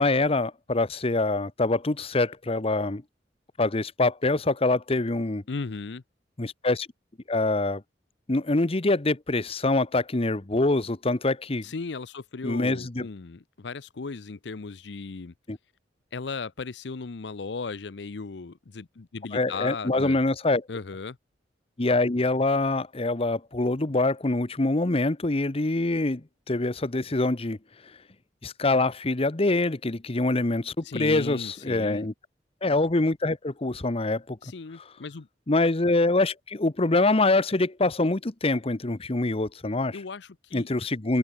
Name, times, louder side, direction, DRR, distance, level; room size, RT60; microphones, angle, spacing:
voice 1, 0.0-3.0 3.6-5.4 6.4-6.9 7.3-7.8 8.3-11.6 12.4-13.0 15.5-15.6 19.3-20.6 21.8-27.6 28.4-32.1 32.6-34.4 35.5-40.0 40.5-41.2, left 2 dB, 35° left, 0.9 m, -25 dB
voice 2, 5.5-6.0 11.6-15.3 16.1-20.2 20.7-21.2 30.8-32.1 34.4-35.3 39.9-40.7, left 4 dB, 70° left, 0.7 m, -36 dB
open air
head